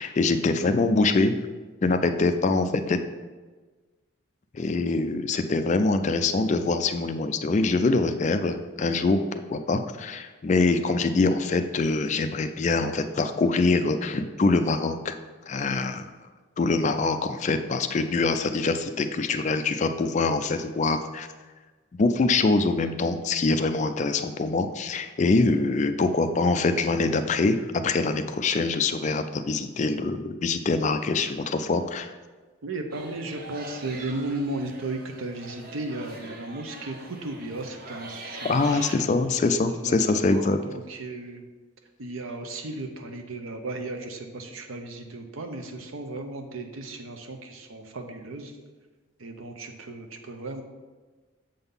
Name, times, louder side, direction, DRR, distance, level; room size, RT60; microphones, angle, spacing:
voice 1, 0.0-1.4 1.8-3.0 4.5-15.1 15.5-16.1 16.6-21.3 22.0-27.6 27.8-32.1 38.4-40.6, left 3 dB, 35° left, 9 dB, 0.3 m, -24 dB
voice 2, 32.6-38.6 39.0-39.1 39.7-41.4 42.0-48.5 49.2-50.6, right 2 dB, 80° right, 5 dB, 0.8 m, -35 dB
sound 1, 32.9-38.9, right 2 dB, 45° right, 0.7 m, -42 dB
6.9 x 3.8 x 5.4 m, 1.3 s
head